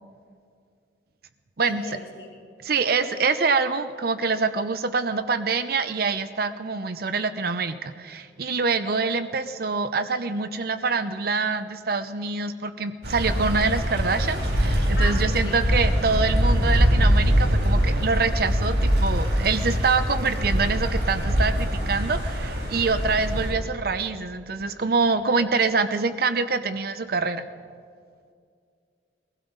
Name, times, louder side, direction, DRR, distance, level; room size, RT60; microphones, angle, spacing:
voice 1, 1.6-2.3 3.0-3.1 15.0-15.6, left 2 dB, 65° left, -2 dB, 2.0 m, -37 dB
voice 2, 2.6-27.4, right 4 dB, 60° right, 10 dB, 0.7 m, -25 dB
sound 1, 13.0-23.5, equal, 80° right, 4.9 m, -23 dB
23.0 x 15.5 x 4.0 m, 2.2 s
head